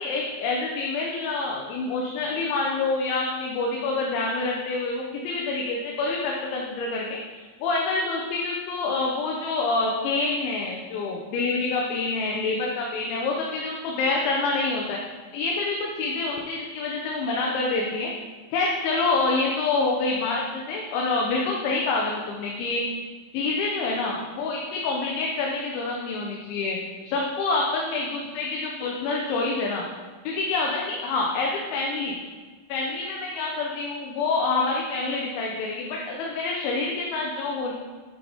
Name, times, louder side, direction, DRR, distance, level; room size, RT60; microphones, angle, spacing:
voice 1, 0.0-15.0 15.3-18.1 18.5-22.8 23.3-29.9 30.2-32.2 32.7-37.7, left 3 dB, 80° left, -1 dB, 3.1 m, -27 dB
8.7 x 8.7 x 3.5 m, 1.5 s
omnidirectional pair, 5.5 m